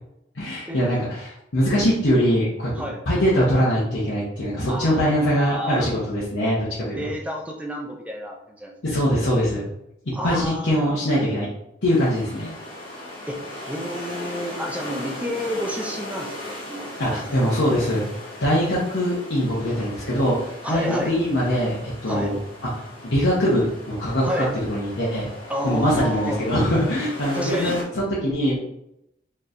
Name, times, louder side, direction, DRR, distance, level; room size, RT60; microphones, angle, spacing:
voice 1, 0.3-2.7 3.1-7.0 8.8-9.6 10.2-11.5 11.8-12.5 17.0-18.0 18.4-22.4 23.0-25.3 25.6-28.6, equal, 85° left, -8 dB, 1.0 m, -22 dB
voice 2, 4.7-5.9 7.0-8.7 10.1-10.9 13.3-13.4 13.7-17.6 19.7-20.0 20.6-21.1 22.1-22.3 24.2-24.5 25.5-26.4 27.3-27.8, equal, 10° right, 1 dB, 0.5 m, -30 dB
sound 1, 11.8-27.8, left 1 dB, 30° left, 1.4 m, -38 dB
4.4 x 3.1 x 2.6 m, 0.81 s
head